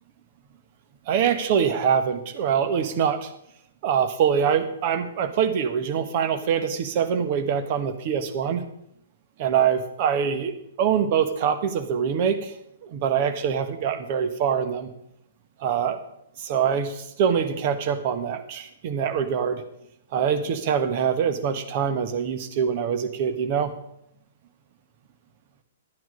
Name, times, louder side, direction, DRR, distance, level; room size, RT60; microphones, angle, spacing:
voice 1, 1.1-3.3 3.8-8.6 9.4-12.5 12.8-14.9 15.6-16.0 16.4-19.6 20.1-23.7, right 7 dB, 40° right, 8 dB, 1.3 m, -24 dB
12.0 x 9.3 x 5.2 m, 0.77 s
figure-of-eight pair, 115°, 0 cm